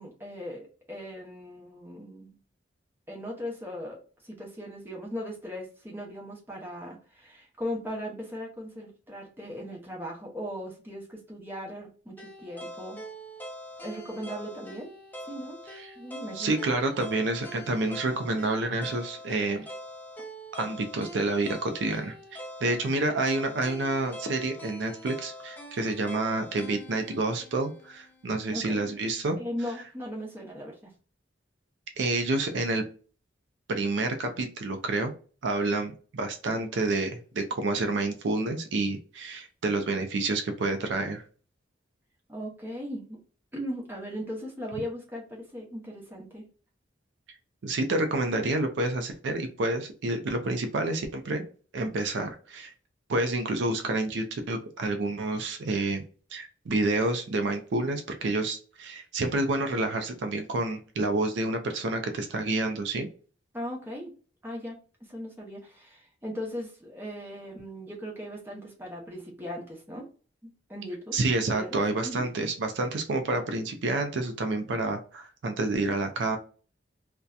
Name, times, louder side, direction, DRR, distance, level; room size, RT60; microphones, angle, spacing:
voice 1, 0.0-2.4 3.1-13.0 13.8-14.9 15.2-15.6 16.0-16.6 28.5-29.0 29.4-30.9 42.3-43.2 43.5-46.5 63.5-64.1 64.4-64.8 65.1-70.0 70.4-71.2 71.5-71.8 72.0-72.3, equal, 10° right, -2 dB, 0.7 m, -38 dB
sound 1, 12.2-28.3, equal, 10° left, 0.4 m, -43 dB
voice 2, 16.4-19.7 20.6-29.4 32.0-32.8 33.7-35.1 35.4-41.2 47.6-51.4 51.7-52.7 53.1-56.0 56.3-63.1 71.1-76.4, right 2 dB, 70° right, 6 dB, 0.4 m, -29 dB
2.6 x 2.2 x 2.2 m, 0.38 s
head